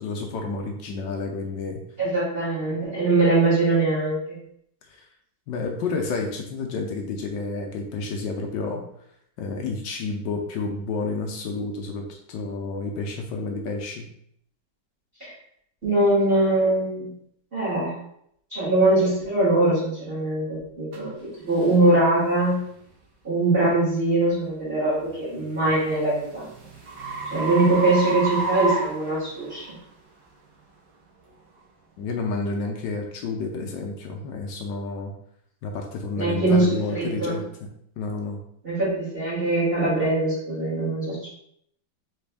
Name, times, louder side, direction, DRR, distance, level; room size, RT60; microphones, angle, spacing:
voice 1, 0.0-1.8 4.9-5.1 5.5-8.8 9.4-14.0 32.0-35.1 35.6-37.4 38.0-38.4, left 3 dB, 70° left, 2 dB, 1.2 m, -30 dB
voice 2, 2.0-4.4 15.2-15.3 15.8-17.1 17.5-17.9 18.5-22.6 23.2-26.5 27.3-29.7 36.2-37.4 38.6-41.3, right 2 dB, 30° right, -8 dB, 1.6 m, -22 dB
sound 1, 20.9-21.0 21.6-21.8 22.4-22.6 25.2-29.7, right 2 dB, 60° right, 1.5 m, -30 dB
4.2 x 3.2 x 3.4 m, 0.71 s
omnidirectional pair, 2.1 m